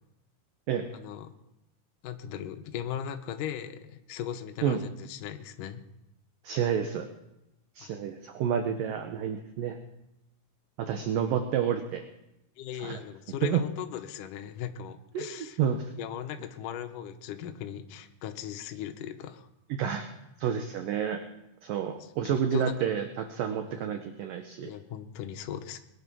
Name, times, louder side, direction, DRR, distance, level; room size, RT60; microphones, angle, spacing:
voice 1, 0.9-1.3 2.0-5.8 7.8-8.0 12.6-15.6 16.0-19.5 22.0-22.7 23.7-23.8 24.6-25.8, left 9 dB, 75° left, 6 dB, 1.9 m, -38 dB
voice 2, 6.4-7.1 7.8-9.8 10.8-12.0 12.8-13.0 13.4-13.6 15.1-15.8 19.8-20.1 20.4-21.2 21.6-24.7, right 8 dB, 75° right, 6 dB, 2.1 m, -29 dB
21.0 x 9.3 x 6.1 m, 0.90 s
omnidirectional pair, 5.0 m